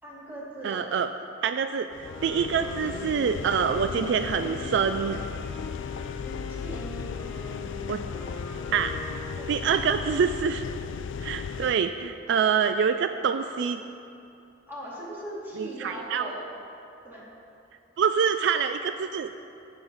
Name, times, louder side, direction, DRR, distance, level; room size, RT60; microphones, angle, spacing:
voice 1, 0.0-0.8 6.6-6.9 9.4-9.8 14.7-16.4 17.0-17.3, right 1 dB, 10° right, -8 dB, 2.6 m, -39 dB
voice 2, 0.6-1.1 1.4-5.2 7.9-8.0 8.7-8.9 9.5-10.6 11.2-13.8 15.6-16.3 18.0-19.3, right 6 dB, 65° right, 9 dB, 0.3 m, -26 dB
sound 1, 1.9-11.7, left 7 dB, 70° left, 0.3 m, -36 dB
Wind instrument woodwind instrument, 2.0-9.9, right 1 dB, 20° left, 1.3 m, -42 dB
14.5 x 7.2 x 4.0 m, 2.7 s
head